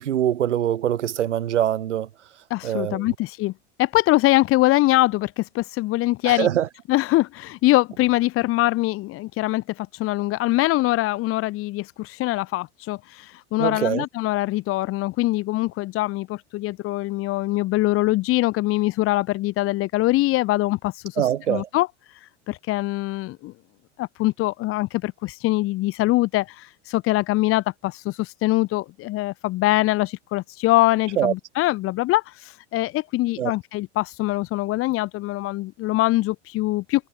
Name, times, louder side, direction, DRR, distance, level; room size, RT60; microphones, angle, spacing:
voice 1, 0.0-2.1 2.6-3.1 6.2-6.7 13.6-14.1 21.2-21.7 31.2-31.3 33.4-33.5, right 11 dB, 85° right, 0.5 m, -23 dB
voice 2, 2.5-3.5 3.8-6.5 6.9-23.5 24.0-37.1, left 18 dB, 40° left, 0.9 m, -23 dB
figure-of-eight pair, 80°, 35 cm